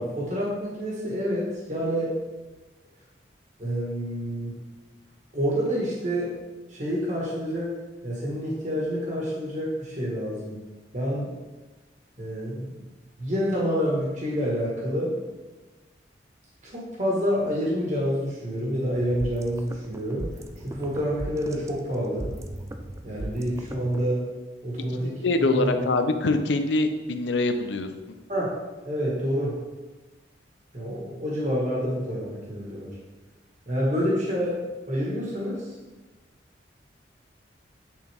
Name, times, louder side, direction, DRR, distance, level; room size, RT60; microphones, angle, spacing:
voice 1, 0.0-2.1 3.6-4.5 5.3-6.3 6.7-7.7 8.0-10.5 10.9-11.3 12.2-12.7 13.2-15.2 16.6-20.2 20.6-22.3 23.0-24.3 24.6-25.1 25.5-25.7 28.3-28.5 28.8-29.6 30.7-32.9 33.7-34.6 34.9-35.7, equal, 40° right, -5 dB, 1.5 m, -28 dB
sound 1, 18.9-24.1, right 1 dB, 15° right, 0.4 m, -38 dB
voice 2, 25.0-27.9, left 2 dB, 80° left, 7 dB, 0.6 m, -24 dB
9.3 x 4.2 x 3.5 m, 1.2 s
head